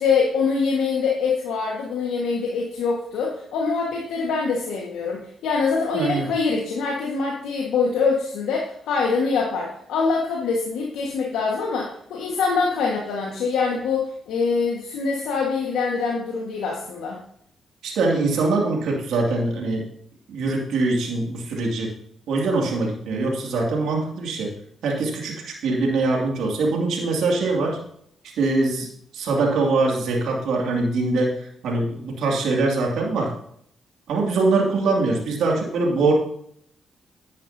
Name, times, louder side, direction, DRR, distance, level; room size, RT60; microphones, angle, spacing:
voice 1, 0.0-17.2, left 4 dB, 80° left, -1 dB, 1.6 m, -24 dB
voice 2, 5.9-6.3 17.8-19.9 20.3-21.9 22.3-24.5 24.8-27.8 28.4-28.9 29.1-33.3 34.1-36.1, right 3 dB, 75° right, 0 dB, 2.4 m, -23 dB
10.5 x 9.3 x 2.8 m, 0.68 s
supercardioid pair, 55°, 0 cm